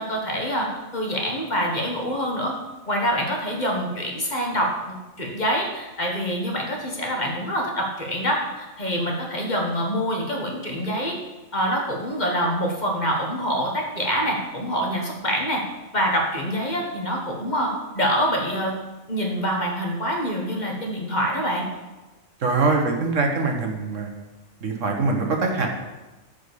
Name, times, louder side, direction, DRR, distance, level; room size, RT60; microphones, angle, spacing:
voice 1, 0.0-2.5 2.9-4.7 5.2-11.1 11.5-15.6 15.9-18.7 19.1-21.7, equal, 35° left, 0 dB, 1.6 m, -25 dB
voice 2, 22.4-24.1 24.6-25.7, right 3 dB, 70° right, 2 dB, 1.6 m, -23 dB
8.7 x 5.3 x 6.8 m, 1.1 s
omnidirectional pair, 1.4 m